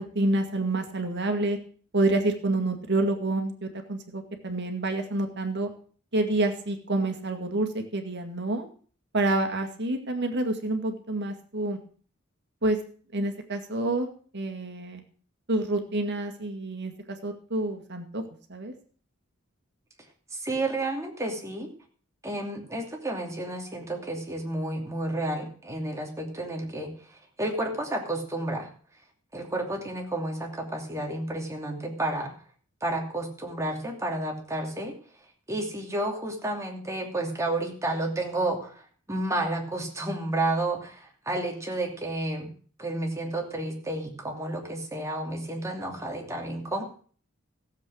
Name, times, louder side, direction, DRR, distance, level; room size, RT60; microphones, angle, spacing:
voice 1, 0.0-1.6 1.9-5.7 6.1-8.7 9.1-11.8 12.6-12.8 13.1-14.1 14.3-15.0 15.5-18.2 18.5-18.7, right 2 dB, 55° right, 5 dB, 2.1 m, -28 dB
voice 2, 20.3-21.7 22.2-26.9 27.4-28.7 29.3-32.3 32.8-34.9 35.5-38.8 39.1-42.5 42.8-46.8, right 1 dB, 15° right, 1 dB, 2.7 m, -31 dB
15.5 x 7.9 x 6.3 m, 0.44 s
head